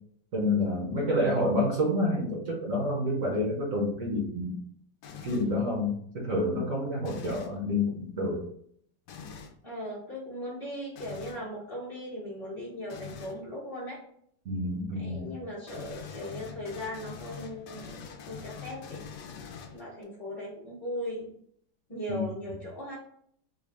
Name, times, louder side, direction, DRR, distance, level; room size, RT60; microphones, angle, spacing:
voice 1, 0.3-4.5 5.2-8.4 14.4-15.3 22.1-22.2, left 1 dB, 55° right, -4 dB, 1.1 m, -28 dB
voice 2, 1.0-1.4 9.6-14.0 14.9-19.0 19.7-21.3 21.9-22.9, equal, 15° left, -8 dB, 0.7 m, -38 dB
sound 1, 5.0-5.6 7.0-7.6 9.1-9.5 11.0-11.5 12.9-13.4 15.7-20.0, left 6 dB, 70° left, 1.1 m, -44 dB
3.8 x 2.4 x 3.4 m, 0.66 s
omnidirectional pair, 2.1 m